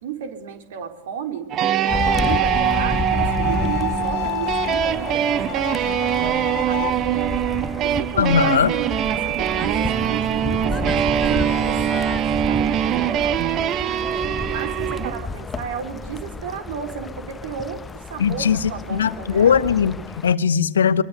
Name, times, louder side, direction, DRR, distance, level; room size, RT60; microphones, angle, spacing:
voice 1, 0.0-1.5 1.8-7.3 7.8-14.0 14.4-19.6, right 8 dB, 55° right, 7 dB, 4.0 m, -33 dB
sound 1, 1.5-15.2, right 10 dB, 30° right, 1.3 m, -23 dB
Bowed string instrument, 1.9-6.9, left 21 dB, 45° left, 0.8 m, -30 dB
sound 2, 1.9-20.3, left 4 dB, 15° left, 0.9 m, -31 dB
voice 2, 8.2-8.7 18.2-21.0, left 7 dB, 65° left, 13 dB, 1.5 m, -19 dB
25.0 x 22.5 x 8.2 m, 0.86 s
figure-of-eight pair, 95°, 0 cm